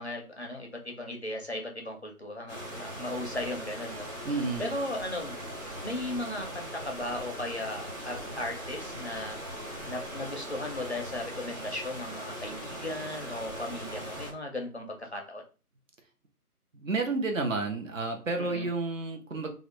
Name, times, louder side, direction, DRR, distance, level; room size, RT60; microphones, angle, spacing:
voice 1, 0.0-4.1 4.6-5.4 5.8-9.4 9.9-15.4 18.4-18.7, left 1 dB, 45° left, 2 dB, 0.4 m, -36 dB
sound 1, 2.5-14.3, equal, 10° right, 0.9 m, -40 dB
voice 2, 4.2-4.6 16.8-19.5, right 3 dB, 60° right, 3 dB, 0.7 m, -30 dB
2.4 x 2.0 x 2.9 m, 0.35 s
figure-of-eight pair, 165°, 46 cm